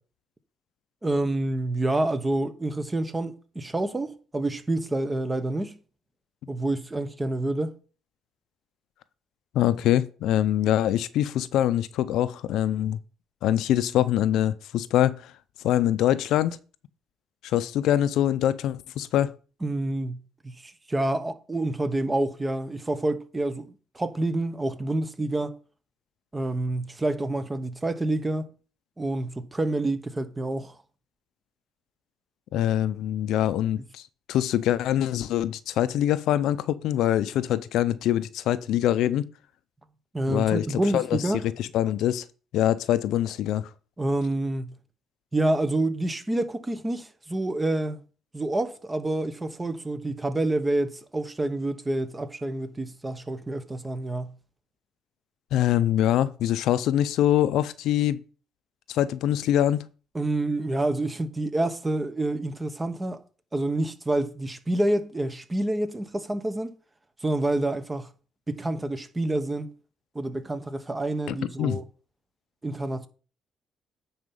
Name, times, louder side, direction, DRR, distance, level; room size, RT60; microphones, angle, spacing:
voice 1, 1.0-5.8 6.5-7.7 19.6-25.5 26.3-28.5 29.0-30.8 40.1-41.4 44.0-44.7 45.3-48.0 48.3-54.3 60.1-63.2 63.5-66.7 67.2-68.1 68.5-69.7 70.1-71.8 72.6-73.1, right 2 dB, 15° right, 1.0 m, -28 dB
voice 2, 9.5-13.0 13.4-15.3 15.6-16.6 17.4-19.3 32.5-34.0 34.3-39.2 40.3-41.2 41.6-42.2 42.5-43.7 55.5-58.2 58.9-59.8 71.3-71.8, left 12 dB, 75° left, 0.5 m, -24 dB
9.7 x 4.4 x 5.4 m
cardioid pair, 95°, 0 cm